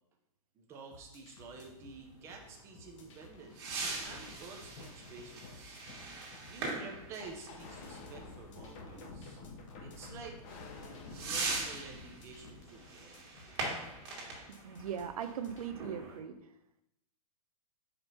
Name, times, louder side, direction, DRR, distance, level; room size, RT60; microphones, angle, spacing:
voice 1, 0.5-5.8 6.5-9.4 9.8-13.2, right 4 dB, 15° right, 2 dB, 0.7 m, -50 dB
sound 1, 0.9-15.7, left 3 dB, 55° left, 1.2 m, -59 dB
sound 2, 1.4-16.2, right 3 dB, 40° right, 1.8 m, -42 dB
sound 3, 3.8-14.3, left 3 dB, 25° left, 0.9 m, -51 dB
voice 2, 14.6-16.4, right 8 dB, 70° right, 9 dB, 0.8 m, -39 dB
5.1 x 4.5 x 5.6 m, 0.80 s
hypercardioid pair, 170°, 19 cm